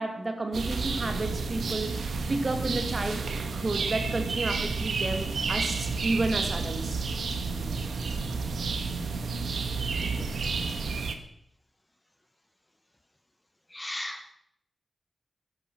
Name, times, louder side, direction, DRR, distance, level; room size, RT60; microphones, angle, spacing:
voice 1, 0.0-2.0 2.3-3.3 3.5-7.0, right 2 dB, 35° right, 6 dB, 2.0 m, -31 dB
sound 1, 0.5-11.1, right 4 dB, 85° right, 1.3 m, -31 dB
voice 2, 13.7-14.3, left 1 dB, 15° left, 8 dB, 0.9 m, -36 dB
13.0 x 11.0 x 6.0 m, 0.72 s
wide cardioid pair, 140°, 0 cm